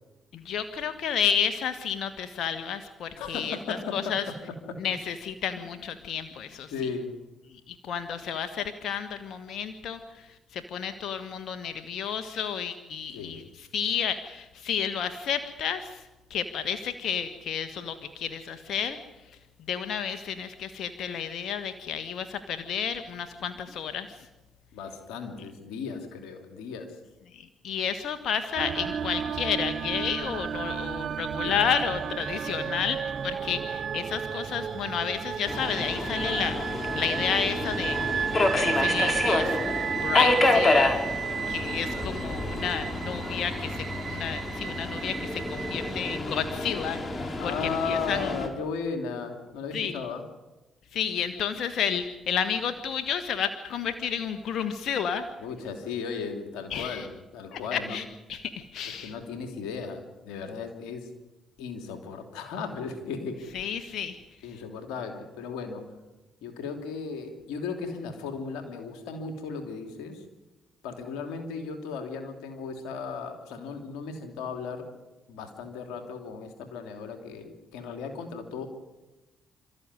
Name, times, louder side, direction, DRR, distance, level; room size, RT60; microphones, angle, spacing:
voice 1, 0.3-4.2 4.8-6.7 7.5-19.0 19.7-24.3 27.3-38.0 38.5-39.6 40.0-40.9 41.5-48.3 49.7-50.0 50.9-55.3 56.7-57.1 57.5-58.0 58.3-59.1 63.5-64.2 64.4-64.6, left 7 dB, 70° left, 9 dB, 1.5 m, -31 dB
voice 2, 3.1-4.1 4.7-4.8 6.7-7.2 13.1-13.4 24.7-27.0 31.4-31.8 47.4-50.2 55.4-58.0 59.0-61.1 61.6-63.4 64.4-65.8 66.4-70.2 70.8-74.9 75.3-78.7, left 5 dB, 85° left, 5 dB, 2.9 m, -36 dB
sound 1, 28.6-46.2, right 7 dB, 60° right, 0.7 m, -33 dB
Subway metro underground, 35.5-48.5, left 2 dB, 40° left, 4.4 m, -28 dB
29.0 x 13.5 x 9.8 m, 1.1 s
supercardioid pair, 55°, 0 cm